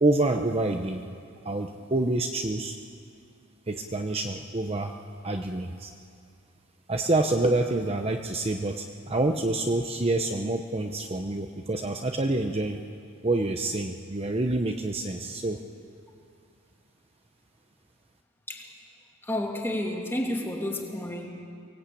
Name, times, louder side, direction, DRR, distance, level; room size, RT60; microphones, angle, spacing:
voice 1, 0.0-1.1 1.4-2.8 3.7-5.0 5.2-5.9 6.9-12.8 13.2-15.6, right 2 dB, 30° right, 4 dB, 0.8 m, -27 dB
voice 2, 19.2-21.3, left 1 dB, 10° left, 0 dB, 2.5 m, -31 dB
24.0 x 18.5 x 8.5 m, 2.4 s
head